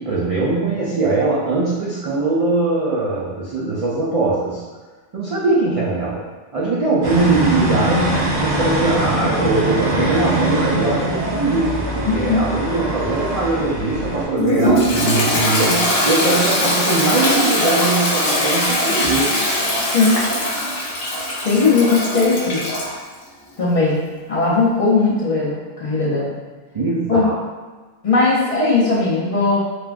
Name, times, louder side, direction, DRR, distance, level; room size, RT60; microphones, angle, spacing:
voice 1, 0.0-4.6 5.1-6.2 6.5-19.4 26.7-27.4, right 3 dB, 60° right, -7 dB, 0.3 m, -21 dB
sound 1, 7.0-14.2, right 1 dB, 85° right, 1.1 m, -22 dB
voice 2, 12.0-12.4 19.9-20.1 21.4-22.6 23.6-24.0 24.3-26.3 27.1-27.3 28.0-29.6, left 3 dB, 45° left, -7 dB, 0.5 m, -18 dB
Toilet flush, 14.4-22.9, left 1 dB, 65° left, 0.8 m, -20 dB
3.2 x 2.1 x 2.3 m, 1.3 s
omnidirectional pair, 1.1 m